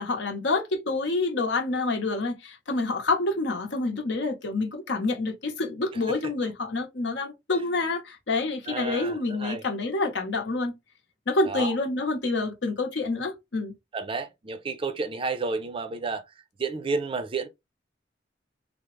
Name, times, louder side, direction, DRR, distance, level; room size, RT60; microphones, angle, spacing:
voice 1, 0.0-10.7 11.3-13.7, left 3 dB, 75° left, 0.8 m, -27 dB
voice 2, 8.7-9.6 11.5-11.8 13.9-16.2 16.6-17.5, right 4 dB, 30° right, 0.4 m, -31 dB
3.4 x 2.0 x 3.0 m
head